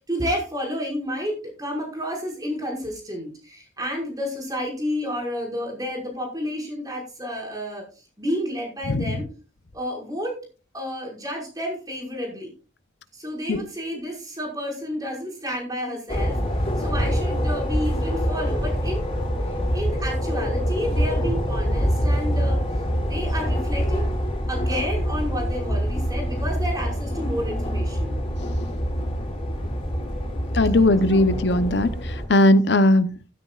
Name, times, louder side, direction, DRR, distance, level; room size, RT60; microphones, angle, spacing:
voice 1, 0.1-7.8 8.2-9.3 9.7-10.4 10.7-12.5 13.1-16.4 16.8-19.1 19.7-22.6 23.0-24.1 24.5-28.1 31.1-31.2, equal, 20° right, 1 dB, 5.3 m, -30 dB
sound 1, 16.1-32.3, equal, 30° left, 5.5 m, -25 dB
voice 2, 30.5-31.9 32.3-33.1, left 1 dB, 65° left, 12 dB, 0.8 m, -18 dB
15.0 x 13.0 x 2.4 m, 0.34 s
head